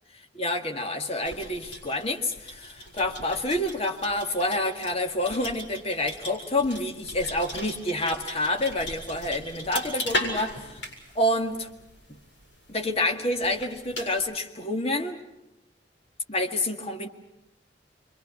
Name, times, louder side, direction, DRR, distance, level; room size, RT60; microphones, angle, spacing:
voice 1, 0.3-10.8 11.2-11.7 12.7-15.2 16.3-17.1, left 1 dB, 35° left, 3 dB, 1.9 m, -28 dB
sound 1, 1.2-14.2, left 1 dB, 80° left, 7.2 m, -38 dB
27.5 x 25.0 x 6.1 m, 0.92 s
head